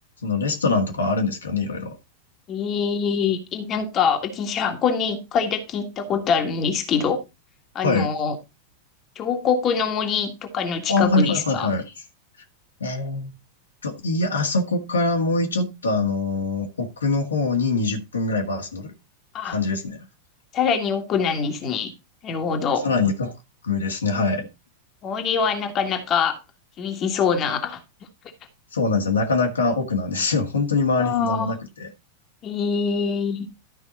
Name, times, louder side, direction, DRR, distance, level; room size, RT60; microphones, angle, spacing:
voice 1, 0.2-2.0 7.8-8.1 10.9-11.9 12.8-13.4 13.8-18.9 19.4-20.0 22.8-23.3 23.6-24.5 28.7-31.9, left 3 dB, 70° left, 1.9 m, -23 dB
voice 2, 2.5-7.2 7.8-8.4 9.2-11.7 19.3-19.6 20.5-21.9 22.2-22.9 25.0-26.4 26.8-27.8 31.0-31.6 32.4-33.5, left 6 dB, 30° left, 1.7 m, -24 dB
13.0 x 5.3 x 4.0 m
figure-of-eight pair, 90°, 0 cm